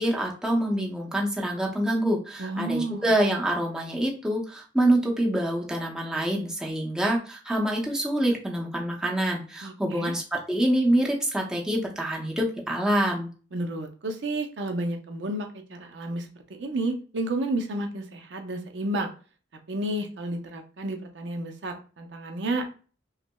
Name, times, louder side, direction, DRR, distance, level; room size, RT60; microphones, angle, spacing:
voice 1, 0.0-13.3, right 1 dB, 5° right, -2 dB, 0.7 m, -26 dB
voice 2, 2.4-3.1 9.6-10.1 13.5-19.1 19.7-22.7, right 1 dB, 80° right, 4 dB, 0.6 m, -31 dB
5.6 x 2.1 x 2.2 m, 0.37 s
head